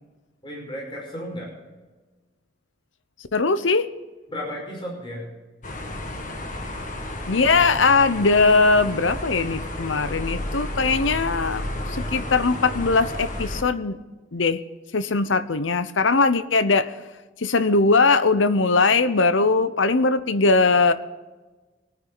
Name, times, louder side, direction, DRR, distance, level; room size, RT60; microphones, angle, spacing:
voice 1, 0.4-1.5 4.3-5.3, equal, 25° left, -2 dB, 5.3 m, -33 dB
voice 2, 3.3-3.9 7.3-14.0 14.3-14.6 14.9-16.9 17.4-20.9, left 3 dB, 85° left, 13 dB, 0.9 m, -20 dB
sound 1, 5.6-13.6, left 1 dB, 45° left, 1.7 m, -32 dB
24.0 x 9.6 x 4.0 m, 1.2 s
head